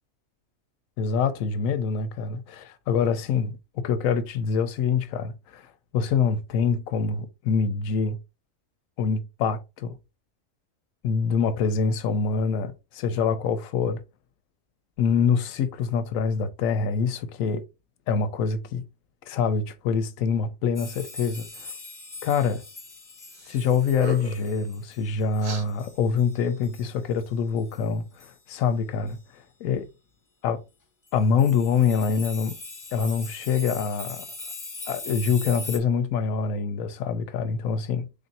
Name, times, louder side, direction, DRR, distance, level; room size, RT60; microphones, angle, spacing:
voice 1, 1.0-3.6 3.8-5.6 5.9-8.2 9.0-10.0 11.0-14.0 15.0-17.6 18.1-18.8 19.3-21.7 22.2-22.6 23.5-29.2 29.6-29.9 30.4-30.6 31.1-32.6 32.9-34.3 34.9-38.1, left 6 dB, 85° left, 1.0 m, -25 dB
sound 1, 20.8-26.9 27.2-27.3 27.6-27.8 28.2-28.4 29.1-29.2 31.1-35.8, left 3 dB, 25° left, 0.4 m, -41 dB
sound 2, 23.3-23.6 23.9-24.5 25.4-25.7, right 3 dB, 50° right, 0.6 m, -36 dB
3.5 x 2.5 x 4.0 m
omnidirectional pair, 1.4 m